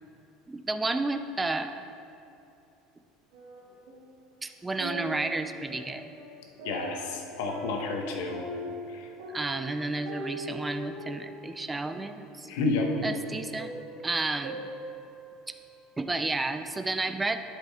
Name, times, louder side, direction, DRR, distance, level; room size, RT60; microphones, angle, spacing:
voice 1, 0.5-1.9 4.4-6.0 9.3-12.5 13.0-13.7 14.0-14.7 15.5-15.6 16.0-17.4, right 2 dB, 10° right, 9 dB, 0.3 m, -31 dB
sound 1, 3.3-4.2 4.6-15.7 16.2-16.3, right 1 dB, 85° right, 1.8 m, -42 dB
voice 2, 6.6-8.4 8.9-9.1 12.5-12.9, left 3 dB, 85° left, 2 dB, 1.0 m, -30 dB
11.0 x 5.1 x 3.5 m, 2.7 s
cardioid pair, 155°, 0 cm